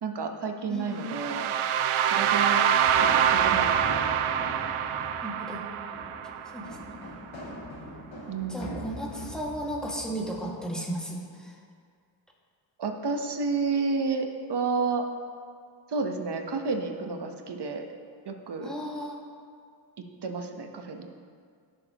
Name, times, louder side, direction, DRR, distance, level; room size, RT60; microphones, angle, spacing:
voice 1, 0.0-1.5 2.1-2.7 2.9-4.0 8.3-8.8 12.8-15.0 15.9-17.9 18.2-18.8 20.2-21.1, right 4 dB, 55° right, 4 dB, 1.1 m, -31 dB
voice 2, 0.7-1.2 5.2-5.6 6.5-6.8 8.5-11.5 18.6-19.2, right 1 dB, ahead, -3 dB, 2.0 m, -35 dB
sound 1, 1.0-6.9, right 9 dB, 85° right, 0.6 m, -25 dB
sound 2, 2.8-10.7, left 1 dB, 70° left, 2.3 m, -41 dB
16.0 x 6.5 x 3.0 m, 2.1 s
cardioid pair, 80°, 49 cm